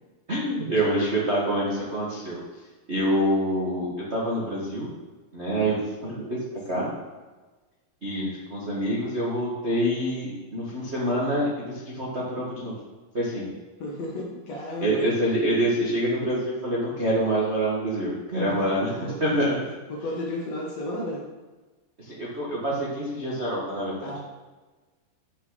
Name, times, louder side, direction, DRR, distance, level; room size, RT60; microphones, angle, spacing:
voice 1, 0.3-2.4 2.9-4.9 5.3-6.4 6.7-6.9 8.0-12.7 13.1-13.5 14.8-19.5 22.0-24.2, right 1 dB, 50° right, -6 dB, 0.8 m, -26 dB
voice 2, 13.8-15.1 18.5-18.6 19.1-19.5 19.9-21.2 24.0-24.2, left 1 dB, 55° left, -2 dB, 2.1 m, -33 dB
13.0 x 6.0 x 4.0 m, 1.2 s
omnidirectional pair, 4.4 m